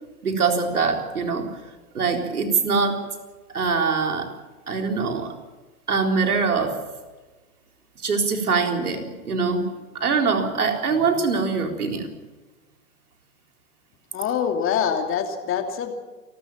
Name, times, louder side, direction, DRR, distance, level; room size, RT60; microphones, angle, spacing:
voice 1, 0.2-1.6 1.9-3.1 3.5-4.3 4.7-5.4 5.9-6.9 8.0-12.1, right 4 dB, 85° right, 3 dB, 4.0 m, -23 dB
voice 2, 14.1-15.9, left 7 dB, 30° left, 5 dB, 2.8 m, -24 dB
29.0 x 13.0 x 7.5 m, 1.2 s
hypercardioid pair, 115°, 43 cm